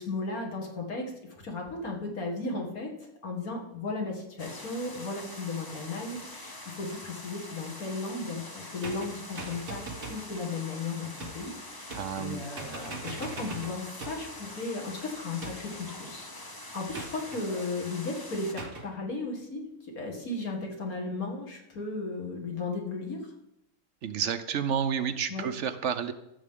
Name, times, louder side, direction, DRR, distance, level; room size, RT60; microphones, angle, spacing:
voice 1, 0.0-2.9 3.2-9.8 10.1-16.3 16.7-19.6 20.0-23.2 25.3-25.5, left 3 dB, 80° left, 0 dB, 2.3 m, -35 dB
sound 1, 4.4-18.5, left 1 dB, 20° left, 0.9 m, -44 dB
sound 2, 8.8-10.3 11.2-11.5 11.9-12.3 12.6-14.4 15.4-15.9 16.9-17.5 18.6-18.9, right 3 dB, 40° right, 1.4 m, -41 dB
voice 2, 11.9-12.4 24.0-26.1, right 7 dB, 65° right, 10 dB, 0.8 m, -30 dB
13.5 x 7.4 x 3.7 m, 0.85 s
omnidirectional pair, 1.5 m